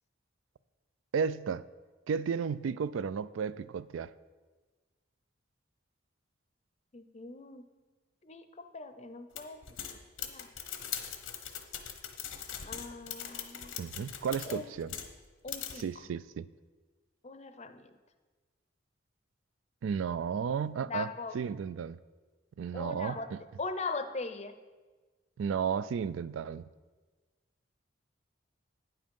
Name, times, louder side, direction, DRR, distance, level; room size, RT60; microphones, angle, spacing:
voice 1, 1.1-1.7 2.1-4.1 13.8-15.0 15.8-16.5 19.8-21.1 21.3-22.0 22.6-23.4 25.4-26.6, right 6 dB, 80° right, 17 dB, 0.3 m, -33 dB
voice 2, 6.9-7.7 8.2-8.4 8.7-9.6 10.2-10.5 12.6-13.7 14.4-14.7 15.4-15.8 17.2-17.9 20.9-21.4 22.7-23.3 23.6-24.5, left 4 dB, 35° left, 9 dB, 0.6 m, -40 dB
sound 1, 9.4-15.2 15.5-15.8, left 9 dB, 85° left, 0.9 m, -41 dB
9.4 x 7.7 x 5.3 m, 1.3 s
head